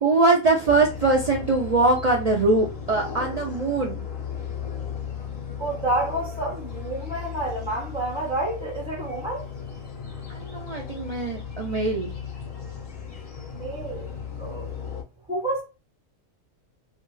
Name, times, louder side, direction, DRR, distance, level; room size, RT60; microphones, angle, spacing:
voice 1, 0.0-4.1 10.3-12.1, right 3 dB, 80° right, 0.3 m, -22 dB
sound 1, 0.6-15.0, left 7 dB, 50° left, 0.4 m, -36 dB
voice 2, 5.6-9.4 13.5-14.7 15.3-15.6, right 2 dB, 5° right, 0.6 m, -29 dB
2.4 x 2.3 x 3.1 m
omnidirectional pair, 1.4 m